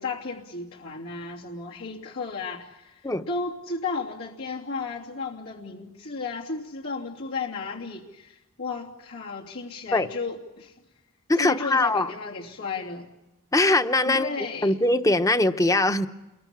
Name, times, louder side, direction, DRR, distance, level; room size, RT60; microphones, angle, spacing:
voice 1, 0.0-3.0 3.3-10.7 11.4-13.1 14.0-14.8, left 4 dB, 85° left, -3 dB, 3.0 m, -34 dB
voice 2, 11.3-12.1 13.5-14.3 14.6-16.1, left 2 dB, 15° left, 10 dB, 0.9 m, -21 dB
29.0 x 22.5 x 7.4 m, 1.0 s
head